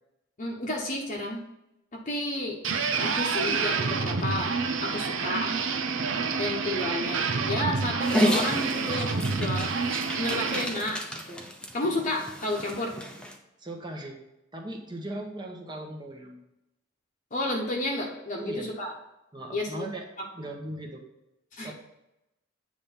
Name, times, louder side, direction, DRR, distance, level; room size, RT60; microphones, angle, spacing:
voice 1, 0.4-1.4 1.9-2.6 3.0-4.5 4.8-5.5 6.4-9.9 10.2-11.0 11.3-11.4 11.7-12.9 17.3-18.9 19.5-19.9 21.5-21.7, left 1 dB, 40° left, -1 dB, 1.0 m, -31 dB
sound 1, 2.6-10.7, right 5 dB, 80° right, 0.7 m, -28 dB
Dog, 8.0-13.3, equal, 5° left, 0.7 m, -32 dB
voice 2, 13.6-14.2 14.5-16.4 18.3-18.7 19.3-20.1 20.4-21.0 21.6-21.7, right 1 dB, 20° right, 1 dB, 1.1 m, -38 dB
8.8 x 3.4 x 5.7 m, 0.90 s
head